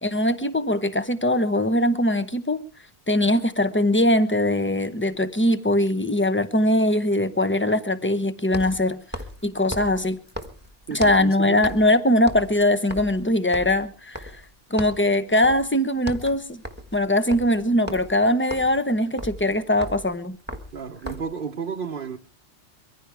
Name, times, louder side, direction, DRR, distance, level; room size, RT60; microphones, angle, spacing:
voice 1, 0.0-2.6 3.1-9.0 9.4-10.2 10.9-14.4 14.7-16.6 16.9-20.4, left 1 dB, 10° left, 0.9 m, -21 dB
sound 1, 8.4-11.3 11.6-11.9 12.2-14.5 14.8-15.1 15.4-15.7 16.0-21.4, equal, 10° right, 1.6 m, -37 dB
voice 2, 10.9-11.8 20.7-22.2, right 6 dB, 55° right, 1.1 m, -32 dB
23.5 x 15.0 x 3.5 m
omnidirectional pair, 1.2 m